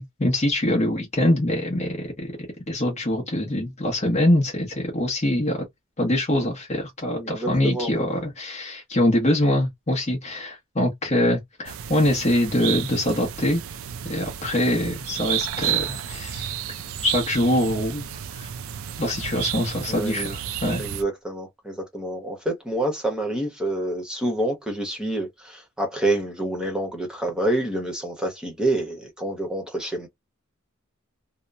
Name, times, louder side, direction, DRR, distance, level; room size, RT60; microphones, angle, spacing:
voice 1, 0.0-2.3 2.7-5.6 6.0-13.6 14.0-16.6 17.0-18.5 19.0-20.8, left 1 dB, 35° left, 0.8 m, -24 dB
voice 2, 7.1-7.9 19.9-20.3 20.8-30.1, right 1 dB, 5° right, 0.9 m, -27 dB
Birds forest woodpecker, 11.7-21.0, right 10 dB, 70° right, 0.4 m, -31 dB
2.8 x 2.0 x 2.3 m
head